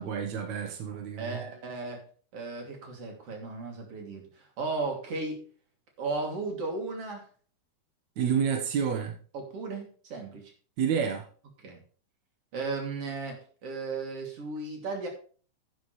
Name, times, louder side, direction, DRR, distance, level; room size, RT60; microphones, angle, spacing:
voice 1, 0.0-1.4 8.2-9.2 10.8-11.3, right 7 dB, 80° right, 1.6 m, -29 dB
voice 2, 1.2-2.0 2.3-5.4 6.0-7.2 9.3-10.5 11.6-11.8 12.5-15.1, right 3 dB, 35° right, 3.2 m, -35 dB
10.5 x 10.5 x 3.3 m
omnidirectional pair, 5.4 m